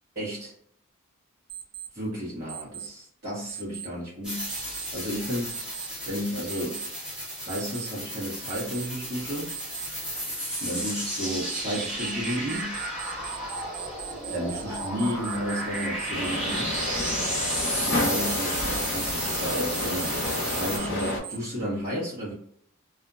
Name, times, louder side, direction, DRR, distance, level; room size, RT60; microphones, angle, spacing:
voice 1, 0.1-0.5 1.9-5.5 6.0-6.8 7.5-9.5 10.6-12.8 14.3-16.7 17.8-20.1 20.5-22.3, equal, 45° right, -9 dB, 1.0 m, -32 dB
Alarm, 1.5-1.9 2.5-2.9 3.5-3.9 4.5-4.9 5.5-5.9 6.5-6.9 7.5-7.9 8.5-8.9 9.5-9.9 10.5-10.9 11.5-21.4, right 11 dB, 20° right, 0.4 m, -39 dB
sound 1, 4.2-20.8, equal, 5° right, 0.9 m, -33 dB
sound 2, 16.1-21.2, left 2 dB, 45° left, 0.7 m, -30 dB
2.4 x 2.1 x 2.4 m, 0.65 s
head